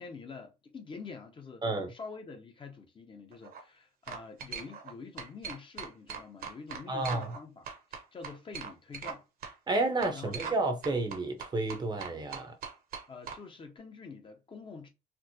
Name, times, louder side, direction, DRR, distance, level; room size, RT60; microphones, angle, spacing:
voice 1, 0.0-9.2 10.1-10.5 13.1-14.9, left 4 dB, 30° left, 0.7 m, -46 dB
sound 1, 3.3-3.6 4.1-4.9 5.2-7.4 7.7-9.2 9.4-9.5 10.0-10.6 10.8-13.4, right 6 dB, 60° right, 0.9 m, -40 dB
voice 2, 6.9-7.3 9.7-12.5, right 2 dB, 25° right, 0.7 m, -31 dB
4.4 x 2.0 x 2.7 m
cardioid pair, 110°, 17 cm